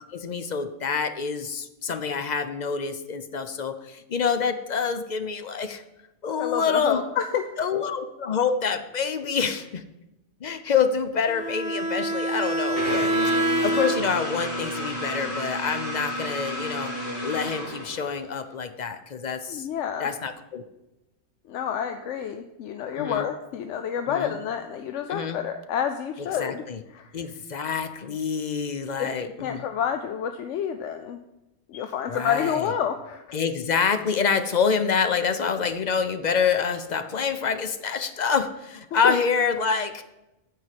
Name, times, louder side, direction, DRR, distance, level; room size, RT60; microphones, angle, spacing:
voice 1, 0.0-5.8 6.2-7.0 7.6-9.8 10.4-13.1 13.4-16.9 17.2-19.7 20.0-20.6 23.0-23.3 24.1-24.3 25.1-25.4 26.4-26.8 27.1-29.6 32.1-32.7 33.3-40.0, left 6 dB, 50° left, 9 dB, 0.6 m, -27 dB
voice 2, 6.4-7.4 19.5-20.1 21.5-26.6 26.9-27.1 29.0-31.2 31.7-33.4 38.9-39.1, left 8 dB, 85° left, 7 dB, 0.9 m, -29 dB
Bowed string instrument, 11.3-14.3, right 1 dB, 75° right, 1.5 m, -26 dB
sound 1, 12.8-18.3, equal, 65° left, 2.0 m, -32 dB
8.9 x 4.7 x 7.5 m, 0.95 s
omnidirectional pair, 1.2 m